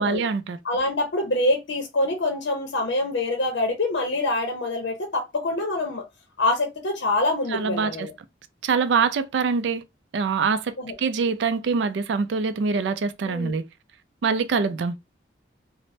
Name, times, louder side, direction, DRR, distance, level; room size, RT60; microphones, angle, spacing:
voice 1, 0.0-0.6 7.5-8.1 8.6-9.8 10.1-13.6 14.2-15.0, right 5 dB, 70° right, 0.4 m, -24 dB
voice 2, 0.6-6.0 6.4-8.1 10.8-10.9 13.2-13.5, left 2 dB, 75° left, 0.6 m, -25 dB
3.1 x 2.0 x 2.6 m
head